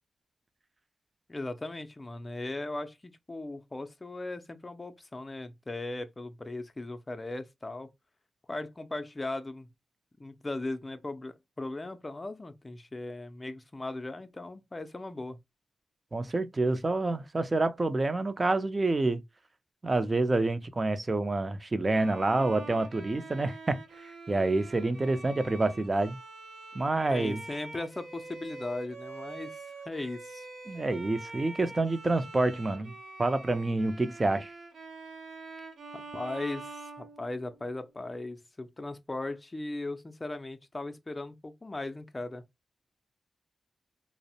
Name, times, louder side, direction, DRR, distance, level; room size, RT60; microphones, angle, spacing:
voice 1, 1.3-7.9 8.5-9.7 10.2-15.4 27.1-30.5 35.9-42.4, left 2 dB, 30° left, 0.4 m, -38 dB
voice 2, 16.1-19.2 19.8-23.8 24.3-26.2 26.7-27.4 30.7-32.9 33.2-34.5, right 2 dB, 35° right, 0.4 m, -28 dB
Bowed string instrument, 21.9-37.8, right 3 dB, 80° right, 0.7 m, -45 dB
2.5 x 2.0 x 2.7 m
cardioid pair, 50°, 0 cm